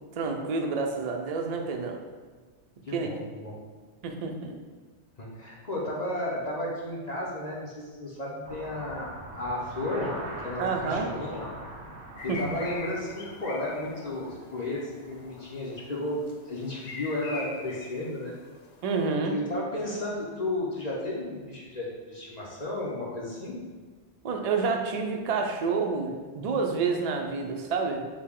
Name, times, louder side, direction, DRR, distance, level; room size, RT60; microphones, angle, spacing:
voice 1, 0.1-2.0 2.9-3.1 4.0-4.6 10.6-11.0 12.3-12.5 18.8-19.4 24.2-28.0, right 4 dB, 65° right, 3 dB, 0.4 m, -29 dB
voice 2, 2.8-3.6 5.2-10.1 10.4-11.5 12.2-18.4 19.3-23.6, left 1 dB, 40° left, -4 dB, 0.7 m, -33 dB
sound 1, 8.4-15.9, right 1 dB, 45° right, 0.8 m, -44 dB
sound 2, 9.9-12.1 12.4-13.3 13.8-14.5 15.1-15.5 16.4-16.8 17.7-18.0, left 1 dB, 60° left, 1.2 m, -44 dB
sound 3, 12.2-19.1, left 3 dB, 80° left, 0.9 m, -44 dB
6.3 x 2.1 x 3.6 m, 1.4 s
omnidirectional pair, 1.2 m